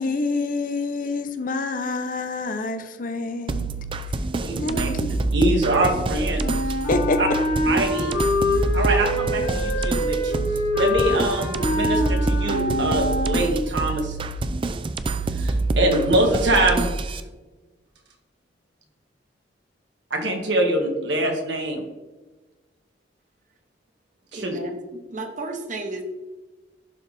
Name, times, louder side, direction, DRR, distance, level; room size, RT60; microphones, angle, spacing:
voice 1, 0.0-3.7 4.6-5.1 6.9-7.2, left 3 dB, 50° left, 8 dB, 0.6 m, -27 dB
sound 1, 3.5-17.2, right 3 dB, 30° right, 0.3 m, -26 dB
voice 2, 4.3-4.9 5.3-6.5 7.2-7.3 7.6-8.2 8.7-14.2 15.3-17.2 20.1-21.8 24.3-24.6, right 1 dB, 75° right, 1 dB, 1.7 m, -24 dB
Wind instrument woodwind instrument, 6.4-13.7, left 1 dB, 80° left, 2.0 m, -25 dB
voice 3, 24.3-24.8 25.1-26.0, right 2 dB, 45° right, 4 dB, 1.1 m, -32 dB
11.5 x 4.0 x 3.4 m, 1.2 s
head